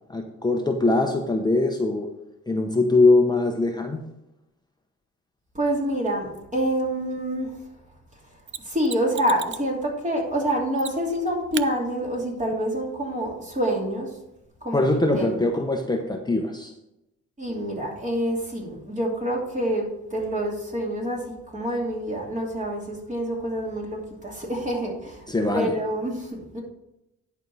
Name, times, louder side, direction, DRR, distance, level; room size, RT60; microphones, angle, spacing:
voice 1, 0.1-2.1 2.5-4.0 14.7-16.7 25.3-25.7, left 2 dB, 15° left, 2 dB, 1.0 m, -22 dB
voice 2, 5.5-7.5 8.6-14.1 14.6-14.8 15.1-15.4 17.4-25.3 25.5-26.6, right 1 dB, 25° right, -1 dB, 2.7 m, -27 dB
Mechanisms, 8.5-9.7 10.8-11.2 11.5-11.7 14.4-14.5, right 9 dB, 40° right, 0.5 m, -36 dB
10.5 x 4.6 x 5.4 m, 0.88 s
cardioid pair, 90°, 30 cm